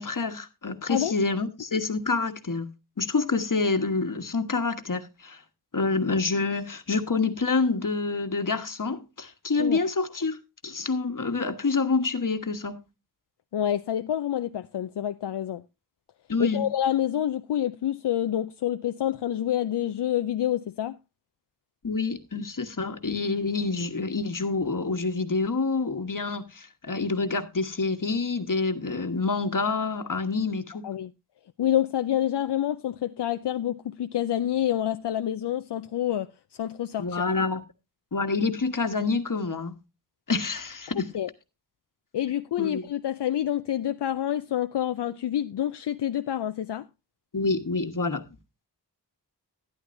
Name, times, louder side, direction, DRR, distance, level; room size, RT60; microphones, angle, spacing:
voice 1, 0.0-2.7 3.0-5.4 5.7-10.4 10.6-12.8 16.3-16.6 21.8-30.9 37.0-37.6 38.1-39.7 40.3-41.1 42.6-42.8 47.3-48.2, left 4 dB, 50° left, 1.3 m, -27 dB
voice 2, 13.5-15.6 16.4-21.0 30.8-31.1 31.6-36.3 36.6-37.2 41.0-41.3 42.1-46.8, left 11 dB, 75° left, 0.5 m, -27 dB
12.5 x 10.5 x 2.6 m
wide cardioid pair, 50°, 41 cm